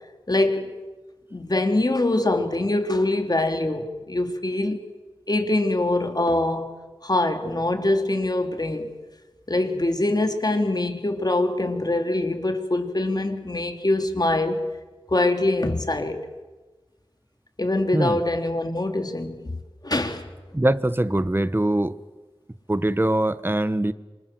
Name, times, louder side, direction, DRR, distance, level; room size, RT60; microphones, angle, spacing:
voice 1, 0.3-0.7 1.3-4.8 5.3-6.7 7.0-8.9 9.5-14.6 15.1-16.3 17.6-19.4 19.8-20.2, left 2 dB, 45° left, 3.5 m, -23 dB
voice 2, 20.5-21.9 22.7-23.9, right 1 dB, 25° right, 1.3 m, -22 dB
27.5 x 25.0 x 7.9 m
wide cardioid pair, 40°, 10 cm